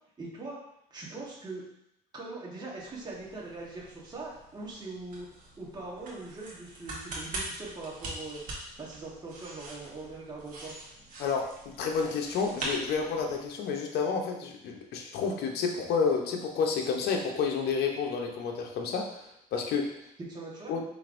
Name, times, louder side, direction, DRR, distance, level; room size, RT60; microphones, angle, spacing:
voice 1, 0.2-0.6 0.9-1.6 2.1-5.3 5.6-8.4 8.8-10.7 20.2-20.8, right 3 dB, 25° right, -5 dB, 1.3 m, -41 dB
sound 1, 2.7-13.5, right 2 dB, 55° right, 1.3 m, -43 dB
voice 2, 11.2-19.0 19.5-19.9 20.7-20.8, left 5 dB, 70° left, 2 dB, 0.8 m, -30 dB
5.2 x 3.3 x 2.5 m, 0.79 s
cardioid pair, 110°, 17 cm